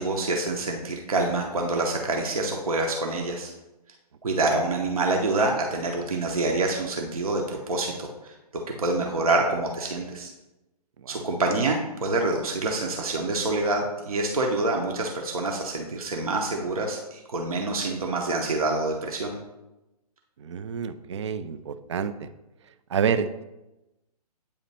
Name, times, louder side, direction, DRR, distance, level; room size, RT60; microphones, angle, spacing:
voice 1, 0.0-3.5 4.2-8.4 8.8-10.3 11.1-19.4, right 2 dB, 60° right, 1 dB, 0.9 m, -26 dB
voice 2, 20.4-22.3 22.9-23.4, right 7 dB, 45° right, 12 dB, 0.4 m, -28 dB
8.5 x 2.9 x 4.1 m, 0.97 s
figure-of-eight pair, 130°, 20 cm